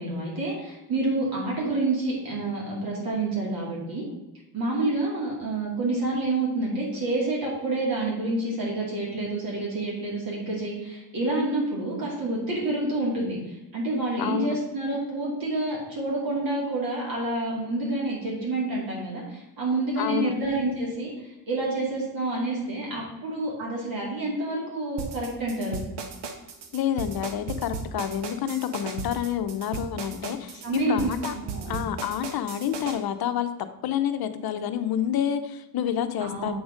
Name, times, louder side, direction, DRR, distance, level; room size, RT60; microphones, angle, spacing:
voice 1, 0.0-4.0 4.5-25.9 30.6-31.8 36.2-36.5, right 2 dB, 55° right, -4 dB, 2.4 m, -28 dB
voice 2, 14.2-14.6 20.0-20.3 26.7-31.3 31.7-33.5 33.8-36.5, left 9 dB, 60° left, 9 dB, 0.7 m, -28 dB
sound 1, 25.0-33.0, right 5 dB, 70° right, 1.1 m, -35 dB
7.9 x 3.9 x 5.0 m, 0.99 s
cardioid pair, 115°, 43 cm